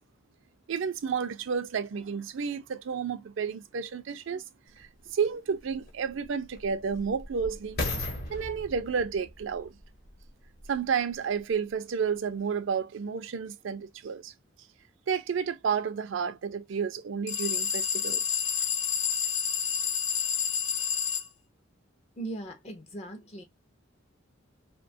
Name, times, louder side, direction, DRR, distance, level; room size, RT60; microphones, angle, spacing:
voice 1, 0.7-4.4 4.8-4.9 5.1-7.8 8.3-9.7 10.7-14.3 15.1-18.2, right 6 dB, 70° right, 0.4 m, -31 dB
sound 1, 4.8-4.9 5.6-10.9 11.5-11.6, left 2 dB, 50° left, 0.8 m, -38 dB
sound 2, 17.3-21.3, left 7 dB, 85° left, 0.5 m, -29 dB
voice 2, 22.2-23.4, right 2 dB, 30° left, 0.4 m, -39 dB
2.7 x 2.2 x 2.5 m
head